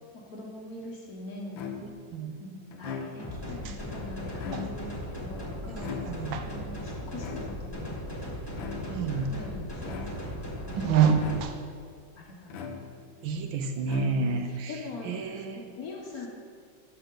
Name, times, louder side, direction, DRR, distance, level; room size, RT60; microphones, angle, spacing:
voice 1, 0.1-1.6 2.4-8.4 8.7-8.8 9.1-11.2 12.2-12.8 14.1-16.3, left 2 dB, 50° left, -1 dB, 1.6 m, -43 dB
sound 1, 1.6-2.1 2.7-3.5 4.3-5.1 5.8-6.5 7.2-7.8 8.5-9.1 9.9-10.5 11.2-11.8 12.5-13.2 13.8-14.5, left 6 dB, 80° left, 1.6 m, -40 dB
voice 2, 1.8-2.3 3.6-3.8 4.5-4.6 5.6-6.5 8.9-9.4 10.7-11.6 13.2-14.8 15.0-15.7, right 6 dB, 80° right, 6 dB, 1.5 m, -28 dB
sound 2, 3.2-11.4, left 1 dB, 15° left, 1.4 m, -38 dB
12.0 x 6.8 x 3.9 m, 2.1 s
omnidirectional pair, 2.1 m